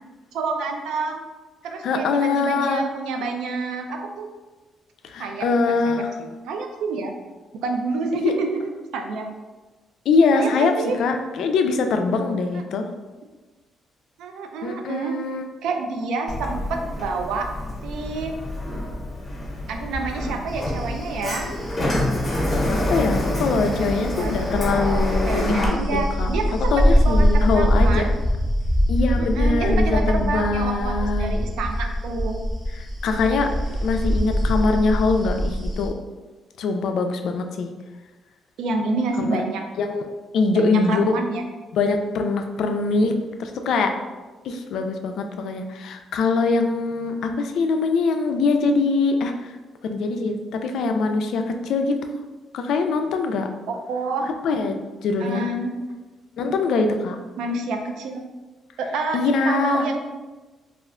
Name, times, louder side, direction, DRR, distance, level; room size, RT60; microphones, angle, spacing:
voice 1, 0.3-1.2 1.6-4.3 5.2-6.1 6.5-7.1 7.6-9.3 10.3-11.0 12.5-12.6 14.2-15.1 15.6-17.5 17.8-18.3 19.7-21.5 23.8-24.3 25.3-28.1 29.2-32.4 38.6-39.6 40.5-41.4 53.9-54.3 55.2-55.7 57.4-58.2 58.8-60.0, right 3 dB, 85° right, 4 dB, 0.4 m, -28 dB
voice 2, 1.8-2.8 5.0-6.1 8.1-8.3 10.1-12.9 14.6-15.4 22.7-26.3 26.7-28.1 28.9-31.4 33.0-35.9 36.6-37.7 39.2-39.4 39.8-40.1 40.3-41.1 41.7-43.1 43.4-43.9 44.4-49.5 49.8-52.0 52.5-53.5 54.4-55.4 56.4-57.2 59.1-59.9, left 4 dB, 75° left, 6 dB, 0.3 m, -23 dB
Sliding door, 16.3-25.7, left 1 dB, 30° left, 0.8 m, -27 dB
sound 1, 20.5-35.9, equal, 15° right, 0.7 m, -24 dB
2.4 x 2.1 x 3.6 m, 1.2 s
cardioid pair, 90°, 0 cm